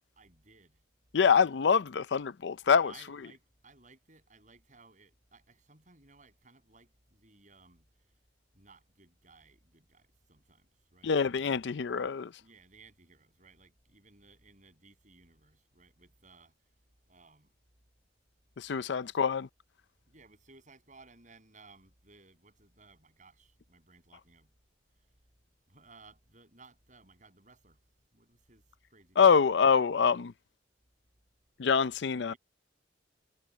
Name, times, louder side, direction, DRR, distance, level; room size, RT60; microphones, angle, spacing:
voice 1, 0.2-0.8 1.4-1.6 2.8-7.8 8.5-11.1 12.4-16.5 17.1-17.5 18.7-19.1 20.1-24.5 25.7-27.8 28.1-28.6 28.9-29.4 31.9-32.4, right 3 dB, 40° right, 7.7 m, -59 dB
voice 2, 1.1-2.9 11.0-12.3 18.6-19.5 29.2-30.3 31.6-32.3, left 6 dB, 65° left, 0.5 m, -25 dB
head